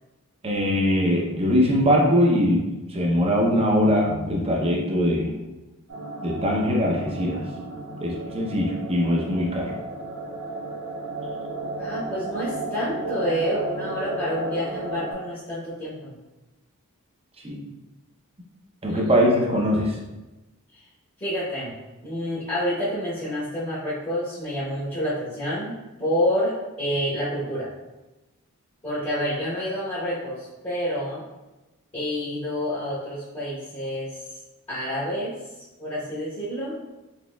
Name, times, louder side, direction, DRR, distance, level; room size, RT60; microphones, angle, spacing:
voice 1, 0.4-5.3 6.2-7.5 8.0-9.7 17.4-17.6 18.8-20.0, equal, 25° right, -1 dB, 0.6 m, -22 dB
sound 1, 5.9-15.1, right 2 dB, 85° right, 1.1 m, -33 dB
voice 2, 11.8-16.1 18.8-19.1 21.2-21.7 22.0-27.7 28.8-31.2 31.9-34.2 34.7-35.3 35.8-36.8, equal, 25° left, -11 dB, 1.0 m, -28 dB
4.1 x 2.8 x 2.2 m, 1.1 s
head